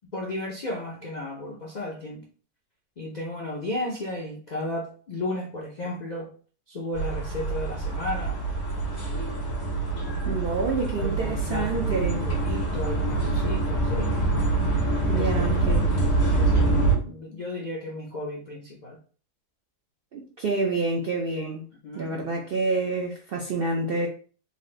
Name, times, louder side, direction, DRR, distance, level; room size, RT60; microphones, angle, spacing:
voice 1, 0.1-2.2 3.0-6.3 6.7-8.4 11.0-14.2 15.1-15.4 16.3-19.0 21.8-22.1, left 1 dB, 90° left, 0.3 m, -34 dB
sound 1, 6.9-16.9, right 3 dB, 65° left, 1.7 m, -25 dB
voice 2, 10.2-12.2 15.1-16.0 20.1-21.6 21.9-24.1, right 3 dB, 75° right, 0.5 m, -28 dB
4.1 x 2.5 x 3.2 m
omnidirectional pair, 1.7 m